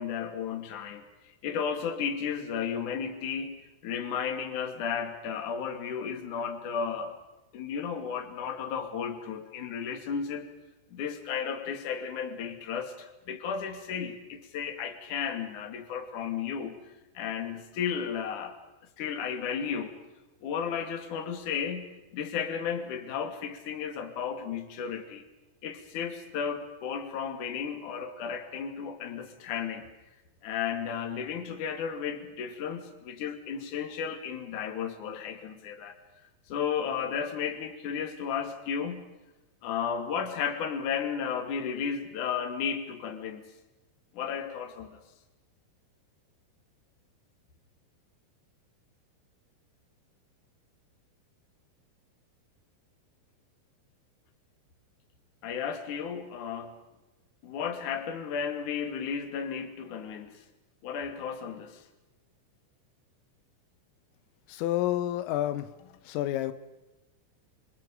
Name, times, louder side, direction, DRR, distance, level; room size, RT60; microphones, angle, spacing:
voice 1, 0.0-7.1 7.5-10.5 10.9-18.6 19.0-19.9 20.4-25.2 25.6-29.9 30.4-35.9 36.5-39.1 39.6-43.4 44.1-45.0 55.4-56.7 57.4-60.4 60.8-61.8, left 7 dB, 45° left, 6 dB, 3.2 m, -34 dB
voice 2, 64.5-65.7 66.1-66.5, left 13 dB, 85° left, 11 dB, 3.7 m, -29 dB
29.5 x 26.0 x 5.1 m, 1.1 s
omnidirectional pair, 5.8 m